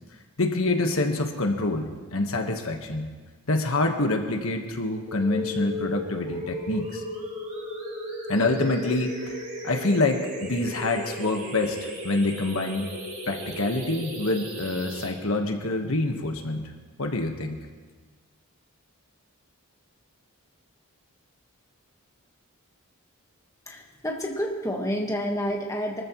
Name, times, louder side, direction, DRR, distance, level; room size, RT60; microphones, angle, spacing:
voice 1, 0.4-3.1 3.5-7.0 8.3-9.4 9.6-12.9 13.3-16.7 17.0-17.6, left 2 dB, 65° left, 4 dB, 1.4 m, -26 dB
sound 1, 5.1-15.1, equal, 35° right, 3.2 m, -35 dB
voice 2, 23.7-26.0, equal, 15° left, 0 dB, 1.4 m, -29 dB
24.0 x 14.0 x 3.1 m, 1.4 s
head